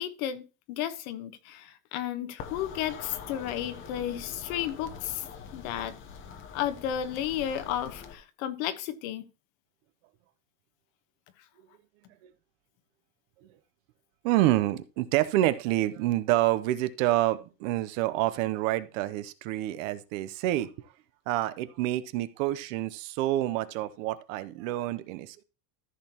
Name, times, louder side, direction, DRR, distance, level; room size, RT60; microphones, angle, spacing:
voice 1, 0.0-5.2 5.5-5.9 6.5-9.2, left 11 dB, 55° left, 1.2 m, -33 dB
sound 1, 2.4-8.2, left 6 dB, 25° left, 0.8 m, -44 dB
voice 2, 14.2-20.7 21.3-25.4, right 15 dB, 50° right, 0.7 m, -28 dB
14.0 x 6.5 x 2.9 m
supercardioid pair, 170°, 49 cm